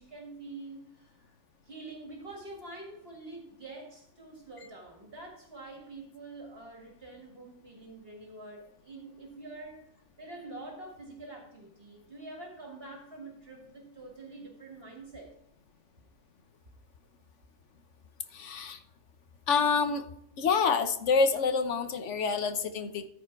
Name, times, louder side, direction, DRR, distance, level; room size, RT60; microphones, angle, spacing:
voice 1, 0.0-1.4 1.7-9.9 10.2-15.3, right 2 dB, 55° right, 0 dB, 2.2 m, -46 dB
voice 2, 18.3-18.8 19.5-20.0 20.4-23.1, left 5 dB, 80° left, 9 dB, 1.3 m, -27 dB
14.0 x 5.0 x 4.7 m, 0.73 s
omnidirectional pair, 1.2 m